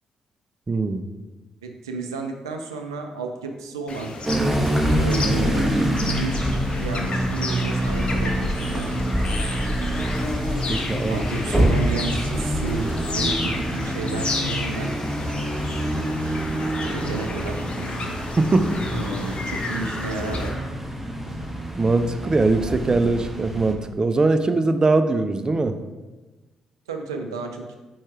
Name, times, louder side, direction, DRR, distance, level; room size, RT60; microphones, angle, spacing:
voice 1, 0.7-1.0 10.7-11.2 18.4-18.8 21.8-25.8, right 3 dB, 30° right, 9 dB, 0.5 m, -21 dB
voice 2, 1.6-4.1 5.0-8.9 11.1-12.9 13.1-14.9 15.7-16.4 16.9-17.7 18.9-20.6 26.9-27.8, right 3 dB, 90° right, 4 dB, 0.4 m, -32 dB
sound 1, 3.9-20.5, left 3 dB, 50° left, 0.9 m, -33 dB
sound 2, 4.3-23.7, right 1 dB, 10° right, 1.1 m, -26 dB
sound 3, 6.9-20.6, left 1 dB, 10° left, 1.2 m, -38 dB
4.7 x 4.5 x 4.5 m, 1.2 s
hypercardioid pair, 40°, 2 cm